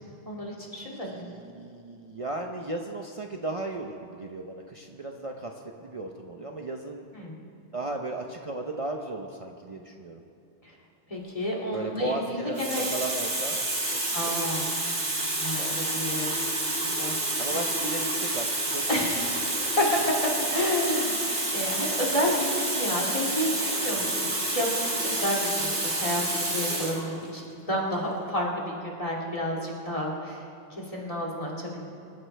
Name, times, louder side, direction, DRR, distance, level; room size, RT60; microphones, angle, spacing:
voice 1, 0.2-1.3 7.1-7.4 10.6-10.7 11.1-12.9 14.1-14.7 15.4-16.3 17.0-17.6 18.9-19.8 20.5-27.4 27.7-30.4 30.7-31.8, equal, 35° left, -3 dB, 2.8 m, -30 dB
voice 2, 1.0-5.5 5.8-7.0 7.7-10.2 11.7-13.6 14.1-14.6 15.5-15.7 17.4-19.1 23.9-24.2, right 2 dB, 35° right, 2 dB, 0.8 m, -35 dB
Water tap faucet, 11.7-12.0 12.6-27.1 27.9-28.1, right 2 dB, 80° right, 2.6 m, -29 dB
25.0 x 14.5 x 3.4 m, 2.5 s
omnidirectional pair, 1.0 m